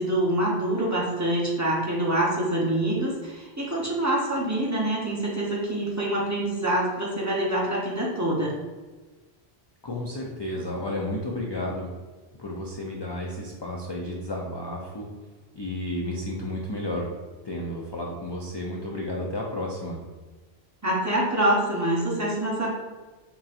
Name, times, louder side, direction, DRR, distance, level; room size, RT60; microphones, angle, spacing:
voice 1, 0.0-8.5 20.8-22.7, right 1 dB, 20° right, -5 dB, 0.7 m, -25 dB
voice 2, 9.8-11.9 12.4-15.1 15.5-17.1 17.4-20.0, left 1 dB, 45° left, -2 dB, 0.3 m, -32 dB
4.0 x 3.7 x 2.5 m, 1.3 s
omnidirectional pair, 1.1 m